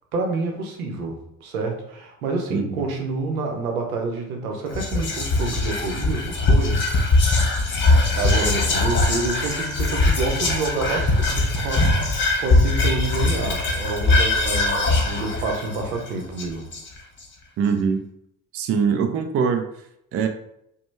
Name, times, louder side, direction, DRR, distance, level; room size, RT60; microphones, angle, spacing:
voice 1, 0.1-6.9 8.2-16.7, right 3 dB, 75° right, 2 dB, 0.8 m, -28 dB
voice 2, 2.5-2.8 17.6-18.0 18.5-19.7 20.1-20.3, right 6 dB, 35° right, 6 dB, 0.5 m, -22 dB
Whispering, 4.7-17.2, left 2 dB, 25° left, 1.3 m, -21 dB
4.9 x 2.2 x 3.3 m, 0.77 s
figure-of-eight pair, 45°, 43 cm